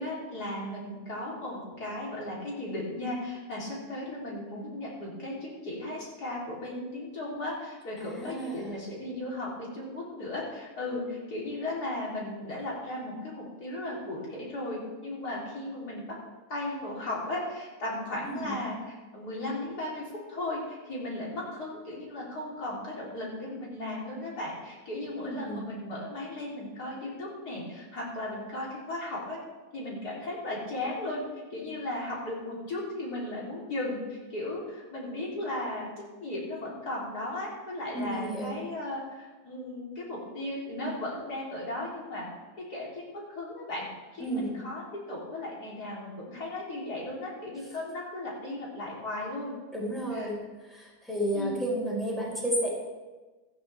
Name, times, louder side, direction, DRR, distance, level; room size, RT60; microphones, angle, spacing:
voice 1, 0.0-13.3 13.6-16.0 16.5-29.4 29.7-31.2 31.5-35.9 36.2-42.3 42.7-43.0 43.3-43.8 44.1-44.8 45.1-49.5 50.1-50.3 51.3-51.6, left 1 dB, 65° left, -5 dB, 4.1 m, -36 dB
voice 2, 8.0-8.8 18.2-18.6 25.2-25.7 37.9-38.6 44.2-44.5 49.7-50.4 50.7-52.7, right 1 dB, ahead, -5 dB, 4.9 m, -32 dB
15.5 x 13.5 x 3.5 m, 1.2 s
omnidirectional pair, 1.8 m